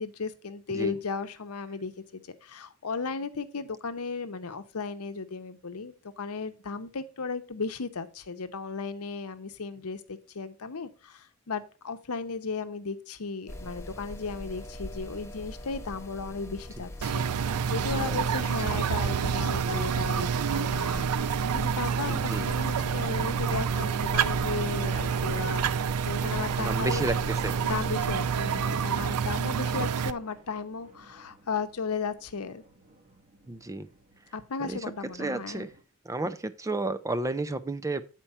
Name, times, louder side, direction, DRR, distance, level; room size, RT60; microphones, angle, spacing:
voice 1, 0.0-25.7 26.0-27.1 27.6-32.6 34.3-35.7, left 4 dB, 75° left, 9 dB, 0.8 m, -35 dB
sound 1, 13.5-28.2, left 1 dB, 10° left, 1.1 m, -41 dB
sound 2, 17.0-30.1, right 7 dB, 85° right, 0.4 m, -28 dB
voice 2, 22.1-22.5 26.6-27.7 33.5-33.9 34.6-34.8 35.2-35.7 36.0-38.0, right 2 dB, 15° right, 13 dB, 0.4 m, -32 dB
sound 3, 23.7-35.8, right 2 dB, 35° right, 1.3 m, -53 dB
8.5 x 4.5 x 5.4 m, 0.34 s
head